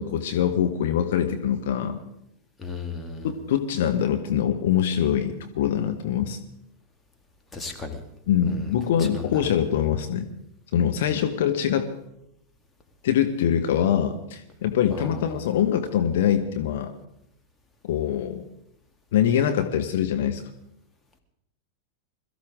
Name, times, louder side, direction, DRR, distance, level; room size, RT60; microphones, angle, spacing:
voice 1, 0.0-2.0 3.2-6.4 8.3-10.3 10.7-11.9 13.0-16.9 17.8-18.4 19.1-20.4, left 9 dB, 55° left, 7 dB, 1.0 m, -24 dB
voice 2, 2.6-3.3 7.5-8.0 8.5-8.6 9.0-9.1 15.0-15.1, left 4 dB, 10° left, 3 dB, 2.2 m, -35 dB
22.0 x 14.0 x 3.7 m, 0.80 s
figure-of-eight pair, 90°, 0 cm